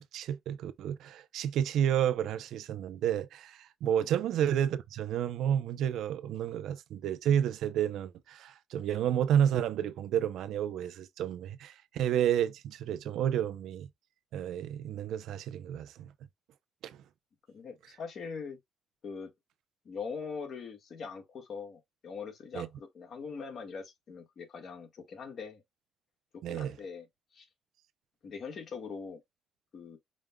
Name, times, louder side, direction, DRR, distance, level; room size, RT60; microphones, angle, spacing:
voice 1, 0.1-13.9 14.3-16.1 16.8-17.0 22.5-22.7 26.4-26.8, right 10 dB, 80° right, 0.5 m, -31 dB
voice 2, 17.5-18.6 19.0-19.3 19.8-25.6 26.3-27.1 27.3-27.5 28.2-29.2 29.7-30.0, left 5 dB, 60° left, 1.4 m, -42 dB
5.0 x 2.2 x 3.5 m
cardioid pair, 90°, 0 cm